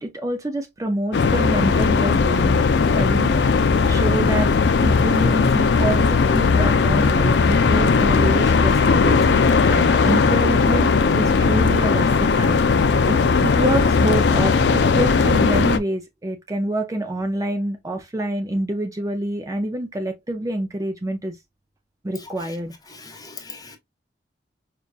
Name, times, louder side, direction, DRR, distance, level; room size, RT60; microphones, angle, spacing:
voice 1, 0.0-2.6 2.9-4.5 4.8-21.4 22.0-22.7, right 1 dB, 20° right, 0.5 m, -27 dB
sound 1, 1.1-15.8, left 4 dB, 70° left, 0.4 m, -17 dB
voice 2, 22.2-22.6 22.9-23.8, left 4 dB, 20° left, 1.0 m, -40 dB
5.1 x 2.3 x 2.3 m
head